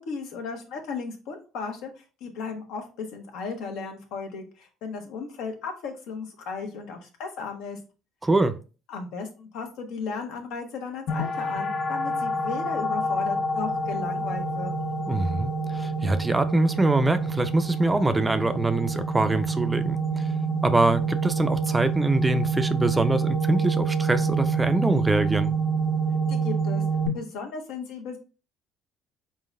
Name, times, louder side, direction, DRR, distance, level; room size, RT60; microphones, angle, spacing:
voice 1, 0.0-7.8 8.9-15.0 26.3-26.8 27.1-28.2, left 4 dB, 80° left, 1.2 m, -35 dB
voice 2, 8.2-8.5 15.1-20.2 20.6-25.5, right 2 dB, 15° right, 0.4 m, -24 dB
sound 1, 11.1-27.1, right 4 dB, 50° left, 1.1 m, -27 dB
4.3 x 3.8 x 2.5 m
cardioid pair, 110°, 0 cm